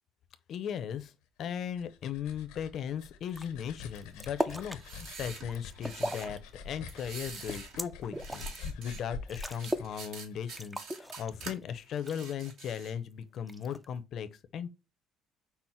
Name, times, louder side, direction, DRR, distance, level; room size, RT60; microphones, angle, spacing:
voice 1, 0.5-1.1 1.4-6.4 6.6-14.3 14.5-14.7, left 8 dB, 55° left, 0.6 m, -37 dB
sound 1, 1.8-10.5, left 5 dB, 90° left, 0.8 m, -46 dB
sound 2, 3.3-3.5 3.8-4.8 5.3-6.4 6.7-8.6 9.0-9.1 9.3-9.9 10.2-10.3 10.6-11.6 12.1-12.6 13.5-14.0, equal, 5° right, 0.4 m, -37 dB
sound 3, 4.6-6.3 6.9-7.8 8.1-9.0 9.5-11.5 11.9-13.0, right 5 dB, 65° right, 1.4 m, -46 dB
5.6 x 2.1 x 4.4 m
cardioid pair, 105°, 0 cm